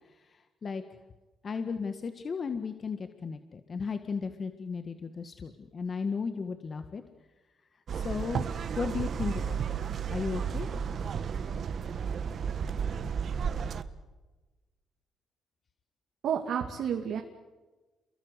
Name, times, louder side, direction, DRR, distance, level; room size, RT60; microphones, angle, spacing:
voice 1, 1.4-7.0 7.9-8.5 8.8-9.8 10.1-10.7, left 5 dB, 40° left, 8 dB, 1.7 m, -35 dB
sound 1, 7.9-13.8, right 7 dB, 55° right, 1.5 m, -33 dB
voice 2, 16.2-17.2, right 8 dB, 70° right, 3 dB, 2.4 m, -30 dB
29.0 x 23.0 x 8.2 m, 1.2 s
cardioid pair, 90°, 0 cm